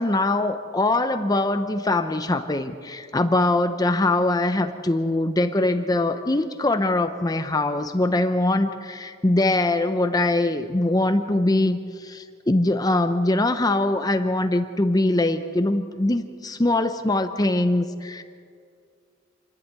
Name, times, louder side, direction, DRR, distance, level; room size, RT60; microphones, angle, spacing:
voice 1, 0.0-18.2, left 2 dB, 20° left, 8 dB, 0.7 m, -22 dB
28.0 x 11.0 x 9.5 m, 2.2 s
head